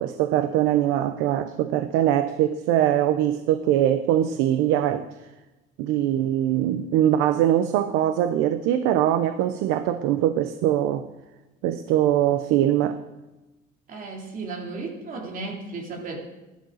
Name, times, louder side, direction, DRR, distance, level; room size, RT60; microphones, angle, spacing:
voice 1, 0.0-5.0 5.8-11.0 11.6-13.0, right 11 dB, 85° right, 0.8 m, -22 dB
voice 2, 13.9-16.2, right 3 dB, 45° right, 3.4 m, -34 dB
16.0 x 11.0 x 6.5 m
cardioid pair, 125°, 20 cm